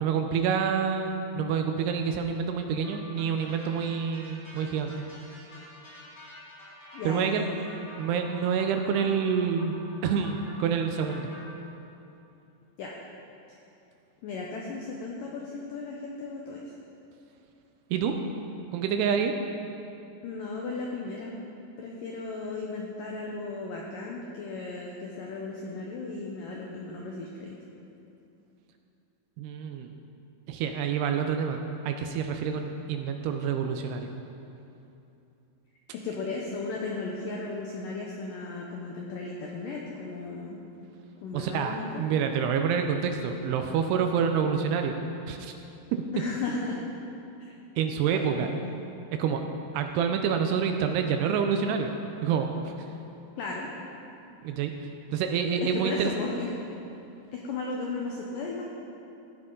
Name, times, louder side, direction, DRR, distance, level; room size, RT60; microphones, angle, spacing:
voice 1, 0.0-4.9 7.0-7.4 8.0-9.8 10.0-11.3 17.9-18.2 18.7-19.3 29.4-29.9 30.5-34.1 41.3-45.0 45.3-45.5 45.9-46.0 47.8-48.5 49.2-49.4 49.7-51.9 52.2-52.7 54.4-54.7 55.1-56.1, right 7 dB, 80° right, 5 dB, 2.5 m, -27 dB
sound 1, 2.8-11.4, left 1 dB, 20° left, 2.7 m, -48 dB
voice 2, 6.9-7.7 12.8-12.9 14.2-16.7 20.2-21.3 21.8-27.6 35.9-40.6 41.2-42.0 46.1-46.8 48.1-48.7 53.4-53.7 55.6-56.5 57.3-58.6, left 3 dB, 85° left, -1 dB, 1.9 m, -35 dB
16.0 x 9.6 x 3.8 m, 2.8 s
omnidirectional pair, 5.0 m